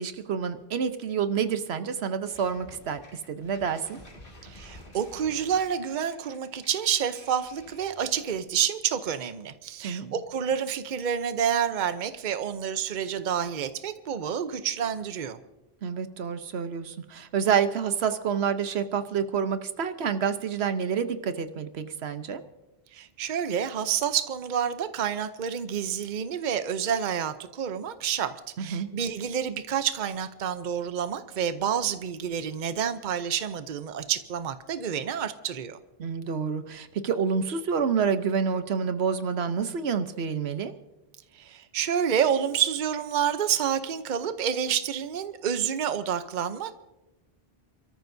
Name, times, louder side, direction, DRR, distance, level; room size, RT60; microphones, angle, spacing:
voice 1, 0.0-3.0 3.3-4.0 9.8-10.1 15.8-22.4 28.6-28.9 36.0-40.7, right 6 dB, 80° right, 10 dB, 1.1 m, -28 dB
sound 1, 2.3-8.5, left 1 dB, 55° left, 2.3 m, -50 dB
voice 2, 4.4-15.4 22.9-35.8 41.3-46.7, right 8 dB, 50° right, 11 dB, 0.8 m, -29 dB
29.5 x 13.5 x 2.7 m, 1.0 s
omnidirectional pair, 1.1 m